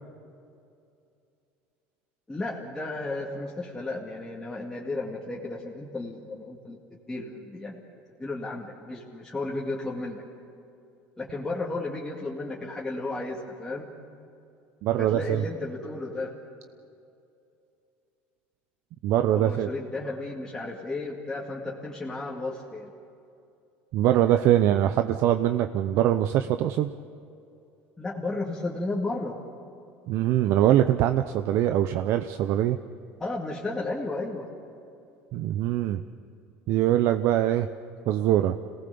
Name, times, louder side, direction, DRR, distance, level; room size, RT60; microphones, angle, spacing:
voice 1, 2.3-7.8 8.2-10.2 11.2-13.9 15.0-16.3 19.3-22.9 28.0-29.3 33.2-34.5, left 2 dB, 10° left, -4 dB, 2.2 m, -33 dB
voice 2, 14.8-15.4 19.0-19.7 23.9-26.9 30.1-32.8 35.3-36.0 36.7-37.7 38.1-38.6, right 12 dB, 60° right, 9 dB, 0.7 m, -23 dB
27.0 x 18.0 x 7.0 m, 2.6 s
supercardioid pair, 120°, 5 cm